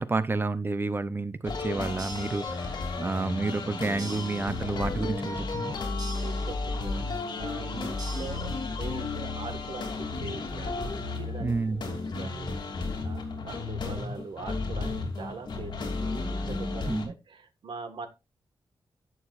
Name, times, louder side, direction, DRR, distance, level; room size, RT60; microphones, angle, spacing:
voice 1, 0.0-5.7 7.7-7.9 11.4-11.8 16.9-17.1, right 3 dB, 25° right, 0.6 m, -30 dB
sound 1, 1.4-17.1, left 3 dB, 55° left, 2.8 m, -33 dB
sound 2, 2.0-3.0 4.0-5.0 6.0-7.0 8.0-9.0, right 3 dB, 55° right, 2.8 m, -46 dB
voice 2, 6.1-8.5 8.8-11.5 11.8-18.1, right 4 dB, 75° right, 1.6 m, -42 dB
11.5 x 8.5 x 2.5 m
wide cardioid pair, 155°, 9 cm